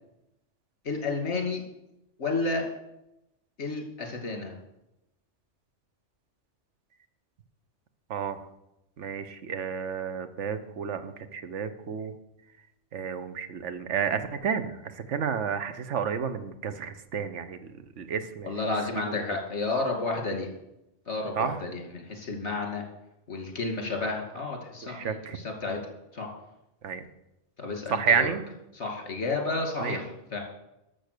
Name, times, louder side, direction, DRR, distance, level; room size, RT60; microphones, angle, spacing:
voice 1, 0.8-1.6 2.2-2.7 3.6-4.5 18.4-20.5 21.1-22.8 23.3-26.3 27.6-28.3 28.7-30.4, left 3 dB, 65° left, 3 dB, 2.6 m, -31 dB
voice 2, 9.0-12.1 12.9-17.6 18.0-18.5 19.0-19.2 21.4-21.6 24.8-25.4 26.8-27.0 27.9-28.4 29.8-30.0, right 7 dB, 80° right, 10 dB, 1.2 m, -30 dB
12.5 x 6.8 x 6.7 m, 0.89 s
omnidirectional pair, 1.2 m